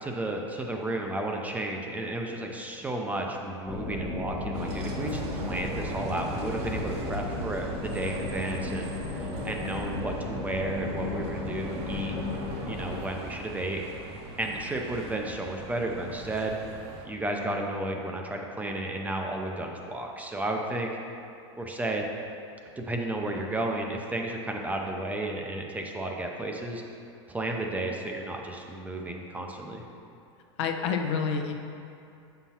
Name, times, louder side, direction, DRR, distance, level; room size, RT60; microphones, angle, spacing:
voice 1, 0.0-8.9 9.2-12.1 12.7-13.8 14.4-16.6 17.0-20.9 21.6-22.0 22.8-26.8 27.3-29.8, right 1 dB, 10° right, 1 dB, 0.5 m, -33 dB
sound 1, 3.7-13.0, left 2 dB, 45° left, 1.5 m, -34 dB
Bus, 4.5-17.0, right 2 dB, 40° right, 0.8 m, -40 dB
voice 2, 30.6-31.5, left 6 dB, 70° left, 4 dB, 0.6 m, -28 dB
7.0 x 5.6 x 2.9 m, 2.6 s
supercardioid pair, 125°, 15 cm